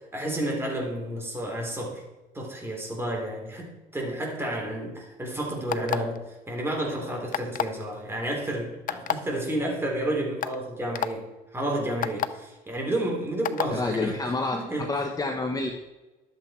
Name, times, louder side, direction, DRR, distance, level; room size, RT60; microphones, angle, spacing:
voice 1, 0.1-2.0 2.3-14.2 14.5-14.9, right 1 dB, 15° right, -1 dB, 3.8 m, -31 dB
sound 1, 5.7-6.2 7.3-7.8 8.9-9.1 9.9-10.0 10.4-10.5 10.9-11.1 12.0-12.3 13.4-13.7, left 10 dB, 55° left, 0.7 m, -27 dB
voice 2, 13.7-15.7, left 3 dB, 20° left, 3 dB, 1.1 m, -28 dB
11.5 x 8.3 x 4.5 m, 1.1 s
cardioid pair, 110°, 17 cm